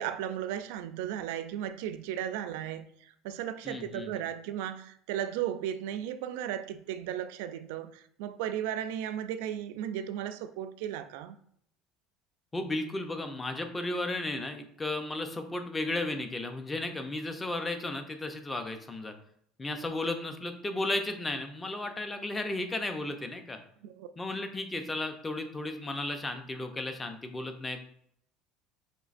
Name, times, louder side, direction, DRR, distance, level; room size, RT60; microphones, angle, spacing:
voice 1, 0.0-11.4 23.8-24.1, right 10 dB, 80° right, 0.3 m, -35 dB
voice 2, 3.6-4.2 12.5-19.1 19.6-23.6 24.2-27.8, left 2 dB, 15° left, 0.4 m, -34 dB
5.1 x 3.1 x 2.4 m
cardioid pair, 155°, 0 cm